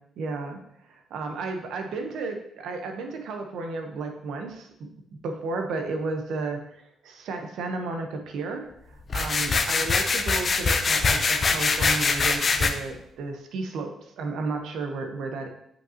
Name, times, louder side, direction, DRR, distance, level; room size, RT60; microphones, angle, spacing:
voice 1, 0.2-4.9 5.2-15.5, right 3 dB, 75° right, 4 dB, 1.0 m, -33 dB
sound 1, 9.1-12.7, left 4 dB, 40° left, 0.7 m, -23 dB
7.6 x 5.4 x 2.9 m, 0.76 s
cardioid pair, 90°, 0 cm